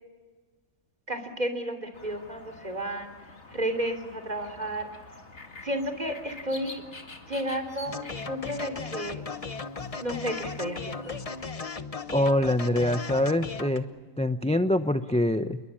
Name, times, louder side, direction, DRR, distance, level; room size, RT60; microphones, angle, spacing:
voice 1, 1.1-3.1 3.5-4.9 5.6-6.8 7.3-9.2 10.0-11.2, right 1 dB, 35° right, 7 dB, 3.4 m, -32 dB
sound 1, 1.9-11.5, left 3 dB, 65° left, 2.5 m, -47 dB
sound 2, 7.9-13.8, left 4 dB, 30° left, 1.0 m, -36 dB
voice 2, 12.1-13.9 14.2-15.6, left 1 dB, 5° left, 9 dB, 0.5 m, -24 dB
28.0 x 22.0 x 8.7 m, 1.4 s
omnidirectional pair, 1.3 m